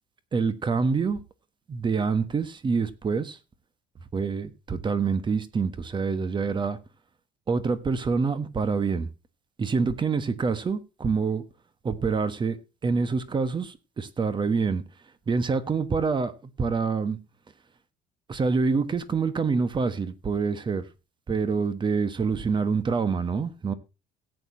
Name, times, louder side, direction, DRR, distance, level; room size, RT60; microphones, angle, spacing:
voice 1, 0.3-1.2 1.7-3.4 4.1-6.8 7.5-9.1 9.6-11.4 11.8-12.6 12.8-14.8 15.3-16.3 16.6-17.2 18.3-20.8 21.3-23.7, right 5 dB, 25° right, 1.2 m, -26 dB
17.0 x 8.5 x 2.7 m
cardioid pair, 140°, 19 cm